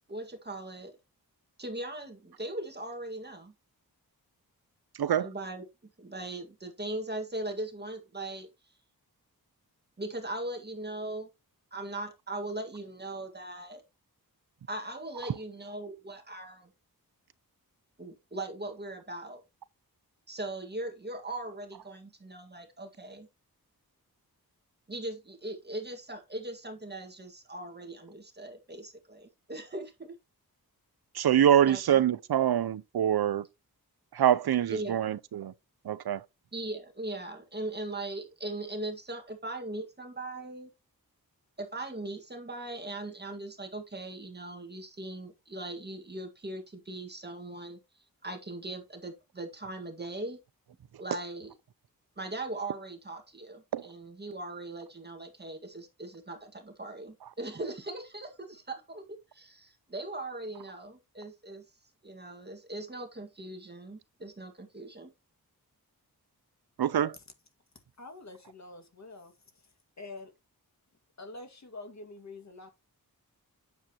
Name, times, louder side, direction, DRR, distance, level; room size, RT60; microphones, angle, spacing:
voice 1, 0.1-0.9 1.6-3.5 5.2-5.6 6.0-8.5 10.0-11.3 11.7-13.8 14.7-16.7 18.0-19.4 20.3-23.3 24.9-30.2 31.7-32.0 34.7-35.1 36.5-40.7 41.6-47.8 48.2-50.4 51.0-51.6 52.2-59.0 59.3-61.7 62.0-65.1, right 2 dB, 25° right, 1.9 m, -39 dB
voice 2, 31.2-33.4 34.2-35.5 35.9-36.2 53.7-53.8 66.8-67.1, right 10 dB, 85° right, 0.7 m, -25 dB
voice 3, 68.0-69.3 70.0-70.3 71.2-72.7, left 2 dB, 45° left, 2.0 m, -46 dB
9.3 x 7.3 x 3.0 m
wide cardioid pair, 135°, 37 cm